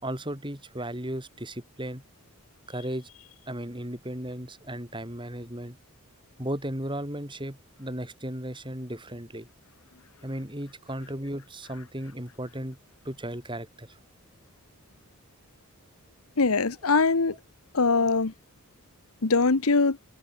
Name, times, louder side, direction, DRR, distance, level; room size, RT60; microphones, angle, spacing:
voice 1, 0.0-2.0 2.7-3.1 3.5-5.8 6.4-9.5 10.2-12.8 13.0-14.0 16.8-16.9, right 1 dB, 20° right, 5.9 m, -35 dB
voice 2, 16.4-17.3 17.7-18.3 19.2-20.0, left 4 dB, 80° left, 1.1 m, -22 dB
head